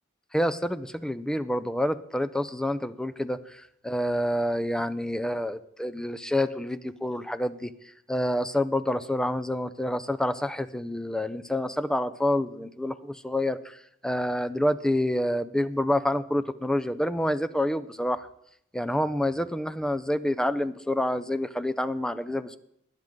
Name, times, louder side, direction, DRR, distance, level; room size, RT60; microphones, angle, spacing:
voice 1, 0.3-18.3 18.7-22.6, left 1 dB, 5° left, 12 dB, 0.5 m, -28 dB
19.5 x 10.5 x 3.7 m, 0.71 s
head